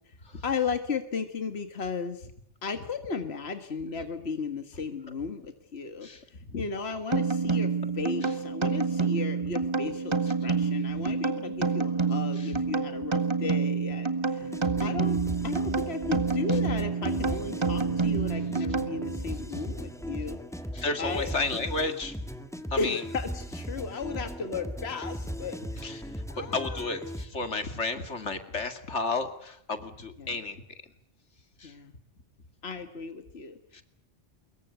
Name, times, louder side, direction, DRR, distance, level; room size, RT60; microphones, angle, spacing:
voice 1, 0.4-2.3 2.6-14.5 14.8-20.4 21.0-21.3 22.8-27.0 30.2-30.4 31.6-31.9 32.6-33.6, left 5 dB, 65° left, 8 dB, 1.9 m, -35 dB
voice 2, 6.0-6.7 8.2-8.3 10.4-10.5 11.0-11.1 12.4-12.6 16.5-16.6 17.8-18.0 19.5-19.7 20.7-22.2 22.7-23.0 25.8-26.0 26.4-30.6 31.6-31.7 33.7-33.8, left 3 dB, 85° left, 8 dB, 2.7 m, -33 dB
sound 1, 7.1-19.3, right 5 dB, 25° right, 2.0 m, -28 dB
sound 2, 14.4-27.3, equal, 5° left, 1.8 m, -38 dB
25.0 x 22.5 x 8.2 m, 0.68 s
omnidirectional pair, 1.2 m